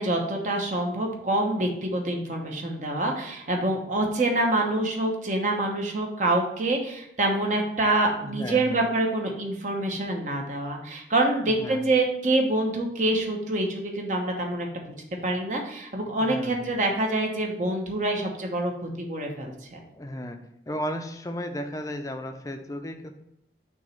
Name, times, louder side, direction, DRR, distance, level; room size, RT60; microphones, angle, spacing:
voice 1, 0.0-14.8 15.2-19.8, right 2 dB, 45° right, 1 dB, 1.0 m, -26 dB
voice 2, 8.2-8.8 11.5-11.9 16.2-16.8 19.9-20.4 20.7-23.1, equal, 20° left, 6 dB, 0.5 m, -34 dB
6.2 x 3.0 x 5.6 m, 0.80 s
head